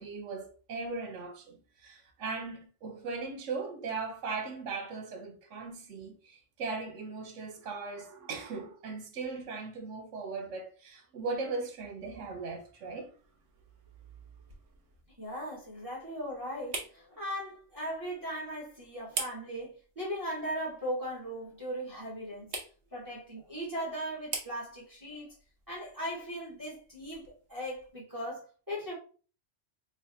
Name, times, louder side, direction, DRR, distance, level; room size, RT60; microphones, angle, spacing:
voice 1, 0.0-13.1, right 4 dB, 90° right, 1.1 m, -38 dB
sound 1, 13.2-28.0, right 4 dB, 65° right, 1.0 m, -46 dB
voice 2, 15.2-22.5 22.9-25.3 25.7-29.0, equal, 20° right, 1.0 m, -38 dB
3.3 x 2.1 x 3.8 m
omnidirectional pair, 1.2 m